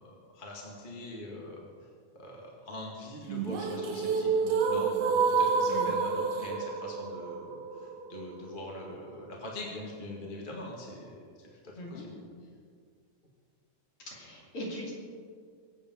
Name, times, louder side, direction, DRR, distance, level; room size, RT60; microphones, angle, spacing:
voice 1, 0.3-1.6 2.2-11.5 11.9-12.3, left 2 dB, 20° left, -2 dB, 1.6 m, -43 dB
sound 1, 3.3-9.3, right 5 dB, 70° right, 2.5 m, -29 dB
voice 2, 11.8-12.1 14.1-14.9, equal, 45° left, -4 dB, 3.7 m, -40 dB
23.0 x 8.6 x 5.6 m, 2.1 s
omnidirectional pair, 3.7 m